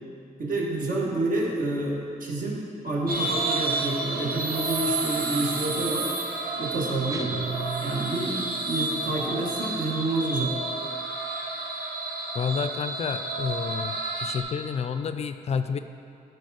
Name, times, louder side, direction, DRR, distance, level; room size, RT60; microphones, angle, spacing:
voice 1, 0.4-6.1 6.6-7.3 7.8-10.6, right 2 dB, 65° right, -3 dB, 1.7 m, -28 dB
sound 1, 3.1-14.4, right 3 dB, 80° right, 1.0 m, -30 dB
sound 2, 7.1-8.8, right 6 dB, 20° right, 0.4 m, -35 dB
voice 2, 12.3-15.8, left 6 dB, 45° left, 9 dB, 0.4 m, -30 dB
12.0 x 4.6 x 4.9 m, 2.5 s
cardioid pair, 115°, 15 cm